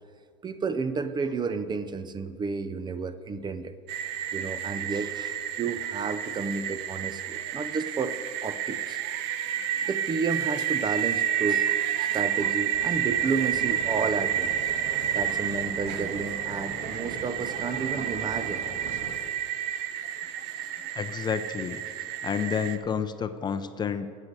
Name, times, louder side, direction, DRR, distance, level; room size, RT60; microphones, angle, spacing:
voice 1, 0.4-3.7 4.3-8.2 8.4-9.0 9.9-14.6 15.1-18.6 20.3-20.4 20.8-20.9, right 4 dB, 25° right, 12 dB, 0.7 m, -31 dB
sound 1, 3.9-22.8, right 10 dB, 65° right, 0.8 m, -30 dB
sound 2, 12.7-19.2, right 4 dB, 45° right, 1.6 m, -40 dB
voice 2, 20.9-21.8 22.2-24.1, left 7 dB, 25° left, 11 dB, 0.6 m, -30 dB
11.5 x 8.5 x 6.7 m, 2.1 s
supercardioid pair, 105°, 18 cm